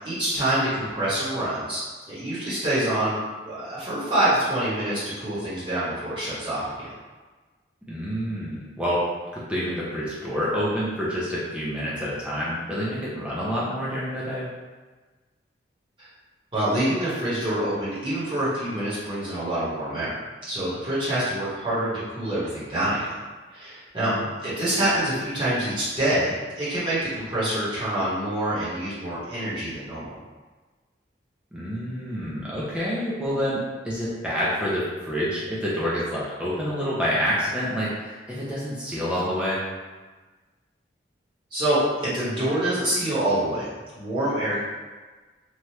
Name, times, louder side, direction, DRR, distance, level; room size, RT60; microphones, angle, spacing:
voice 1, 0.0-1.8 2.1-3.2 3.4-6.9 16.0-16.1 16.5-20.1 20.5-23.1 23.5-24.1 24.4-30.2 41.5-44.6, right 1 dB, 30° right, -11 dB, 1.2 m, -26 dB
voice 2, 7.9-9.0 9.3-14.5 24.0-24.2 31.5-39.6, equal, 5° right, -8 dB, 0.5 m, -28 dB
3.2 x 2.4 x 2.8 m, 1.3 s
head